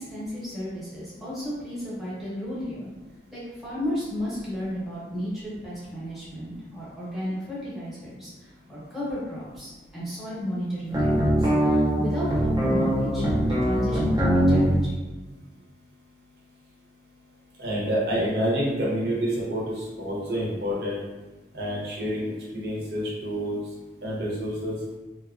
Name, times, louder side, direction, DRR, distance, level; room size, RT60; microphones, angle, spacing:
voice 1, 0.0-2.9 3.3-13.3 13.6-14.9, equal, ahead, -10 dB, 0.8 m, -33 dB
sound 1, 10.9-14.7, equal, 20° right, 0.4 m, -22 dB
voice 2, 17.6-21.0 21.5-23.7 24.0-24.8, equal, 55° right, -5 dB, 0.7 m, -28 dB
2.6 x 2.2 x 2.4 m, 1.2 s
head